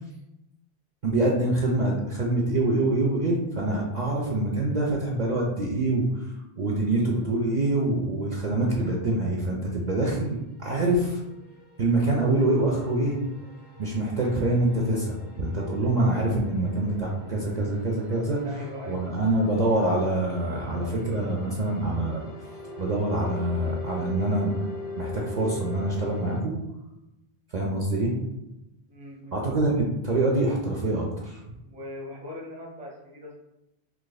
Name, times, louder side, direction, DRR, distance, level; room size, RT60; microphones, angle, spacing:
voice 1, 1.0-11.2 11.8-13.2 13.8-18.4 18.9-22.2 22.8-24.5 25.0-26.5 27.5-28.2 29.3-31.4, right 2 dB, 55° right, -2 dB, 0.5 m, -25 dB
sound 1, 10.3-26.4, left 2 dB, 40° left, 0.8 m, -42 dB
voice 2, 18.4-19.2 28.9-29.6 31.7-33.3, left 1 dB, 10° right, -2 dB, 0.5 m, -40 dB
2.9 x 2.5 x 3.9 m, 0.91 s
omnidirectional pair, 1.1 m